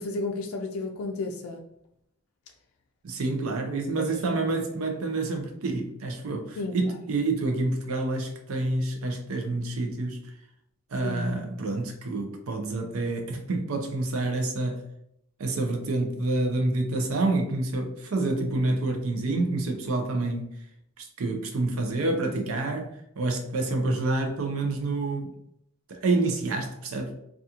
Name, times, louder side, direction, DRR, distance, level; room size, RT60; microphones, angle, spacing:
voice 1, 0.0-1.6 4.0-4.1 6.6-6.8 11.0-11.3, left 3 dB, 85° left, 0.3 m, -32 dB
voice 2, 3.0-10.2 10.9-14.8 15.4-20.5 21.0-25.3 25.9-27.1, right 2 dB, 80° right, 0.5 m, -28 dB
2.8 x 2.3 x 2.4 m
head